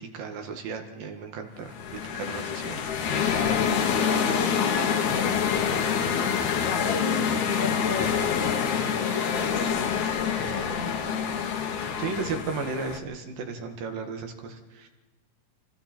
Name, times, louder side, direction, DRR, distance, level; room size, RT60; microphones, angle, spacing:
voice 1, 0.0-2.8 12.0-14.9, right 5 dB, 75° right, 4 dB, 3.5 m, -35 dB
sound 1, 1.7-13.0, left 7 dB, 65° left, 2.6 m, -26 dB
voice 2, 4.3-5.8 6.7-9.8 10.4-10.8, left 5 dB, 90° left, -2 dB, 4.8 m, -35 dB
28.5 x 23.5 x 4.5 m, 1.2 s
omnidirectional pair, 4.0 m